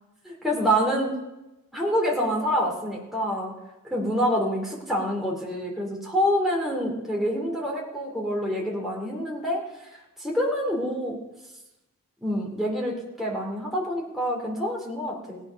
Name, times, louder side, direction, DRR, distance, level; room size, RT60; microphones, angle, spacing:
voice 1, 0.2-1.1 1.7-3.5 3.8-9.6 10.2-11.2 12.2-15.4, equal, ahead, -3 dB, 2.5 m, -26 dB
16.5 x 9.1 x 5.7 m, 1.0 s
head